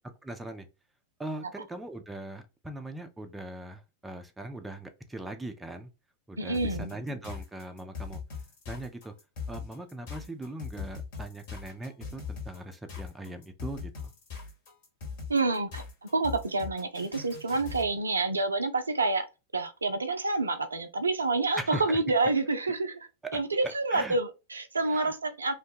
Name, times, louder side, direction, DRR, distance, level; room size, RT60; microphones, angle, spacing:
voice 1, 0.2-0.7 1.2-5.9 6.3-8.2 8.7-9.1 9.5-14.1 21.6-22.0 23.2-23.4 23.9-24.2 24.9-25.1, right 1 dB, 10° right, 0.4 m, -40 dB
voice 2, 6.4-6.9 15.3-15.8 16.1-19.3 19.5-25.5, right 3 dB, 75° right, 0.4 m, -28 dB
sound 1, 6.5-17.9, left 5 dB, 50° left, 1.2 m, -40 dB
2.5 x 2.2 x 2.8 m
figure-of-eight pair, 90°, 0 cm